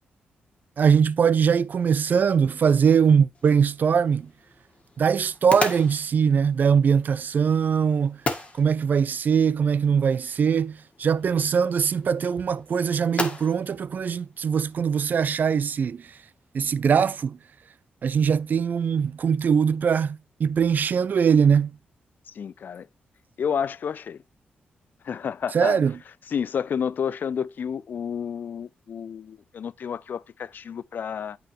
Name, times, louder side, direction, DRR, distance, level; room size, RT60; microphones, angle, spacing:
voice 1, 0.8-4.3 5.0-8.2 8.6-16.0 16.5-17.4 18.0-21.7 25.5-25.9, right 7 dB, 55° right, 0.5 m, -21 dB
sound 1, 3.3-15.0, left 3 dB, 30° left, 1.7 m, -37 dB
voice 2, 22.3-22.9 23.4-24.2 25.0-25.8 26.3-31.4, left 7 dB, 60° left, 0.4 m, -30 dB
8.9 x 4.8 x 3.1 m
cardioid pair, 95°, 4 cm